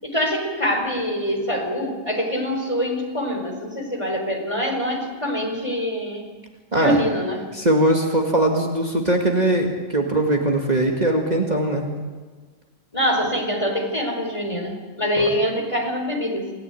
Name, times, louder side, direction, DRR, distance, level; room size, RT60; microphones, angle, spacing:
voice 1, 0.0-6.3 6.7-7.4 12.9-16.5, equal, 25° left, 2 dB, 4.7 m, -24 dB
voice 2, 7.5-11.9 15.2-15.3, right 1 dB, 30° right, 1 dB, 2.4 m, -20 dB
28.0 x 18.5 x 9.1 m, 1.4 s
omnidirectional pair, 1.4 m